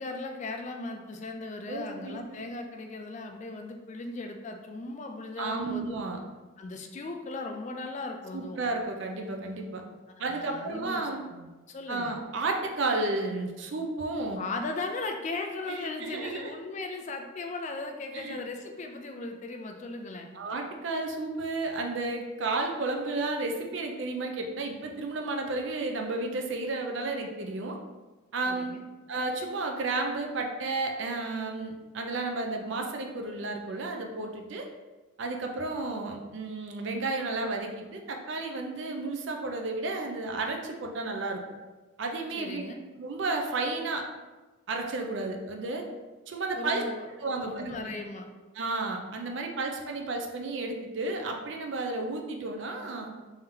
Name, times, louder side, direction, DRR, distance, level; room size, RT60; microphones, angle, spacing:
voice 1, 0.0-6.0 6.6-8.6 10.2-12.2 14.4-20.3 28.5-28.8 42.4-42.8 46.6-48.3, left 3 dB, 35° left, 4 dB, 0.3 m, -38 dB
voice 2, 1.7-2.4 5.4-6.2 8.3-9.8 10.2-11.2 11.9-14.4 15.7-16.5 18.1-18.4 20.3-27.8 28.3-28.8 29.1-34.7 35.2-41.4 42.0-42.7 43.0-44.0 44.7-45.8 46.3-46.8 47.2-47.8 48.5-53.1, right 3 dB, 65° right, 2 dB, 0.5 m, -32 dB
3.5 x 2.8 x 3.6 m, 1.2 s
head